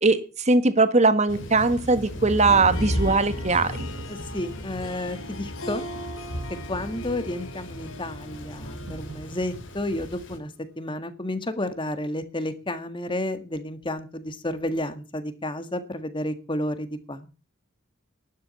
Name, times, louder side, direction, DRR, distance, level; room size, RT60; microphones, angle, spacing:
voice 1, 0.0-3.9, right 3 dB, 35° right, 11 dB, 1.7 m, -20 dB
Thunder, 1.3-10.4, equal, 65° left, 2.7 m, -35 dB
Harp, 2.7-10.4, left 1 dB, 80° left, 2.6 m, -41 dB
sound 1, 3.5-4.4 8.9-9.7, right 1 dB, 75° right, 1.6 m, -42 dB
voice 2, 4.1-5.8 6.7-17.3, left 1 dB, 25° left, 10 dB, 1.7 m, -31 dB
12.0 x 10.5 x 6.9 m, 0.33 s
head